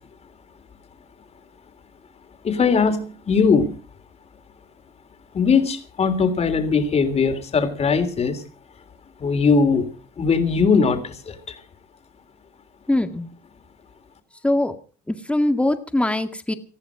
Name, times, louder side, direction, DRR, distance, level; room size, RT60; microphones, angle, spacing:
voice 1, 2.4-3.8 5.3-8.4 9.2-9.9 10.2-11.6, left 5 dB, 40° left, 8 dB, 3.4 m, -20 dB
voice 2, 12.9-13.3 14.4-14.7 15.1-16.5, left 1 dB, 5° left, 7 dB, 1.9 m, -22 dB
19.5 x 14.0 x 5.0 m, 0.38 s
cardioid pair, 110°, 17 cm